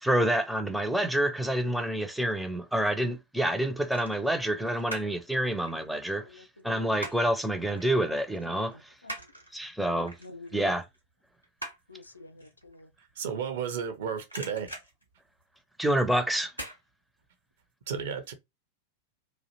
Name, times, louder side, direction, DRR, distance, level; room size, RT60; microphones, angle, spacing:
voice 1, 0.0-8.8 9.5-10.1 10.5-10.8 15.8-16.5, right 1 dB, ahead, 0.4 m, -28 dB
sound 1, 2.7-3.0 3.9-5.2 5.5-7.4 7.8-7.9 8.3-13.9 14.2-15.9 16.5-16.8 17.2-17.3, right 1 dB, 90° right, 0.8 m, -43 dB
voice 2, 6.2-6.9 8.7-9.2 10.2-10.7 11.9-12.9, left 3 dB, 80° left, 0.4 m, -48 dB
voice 3, 13.0-14.7 17.9-18.3, right 7 dB, 60° right, 0.6 m, -33 dB
2.4 x 2.0 x 2.8 m
figure-of-eight pair, 90°, 0 cm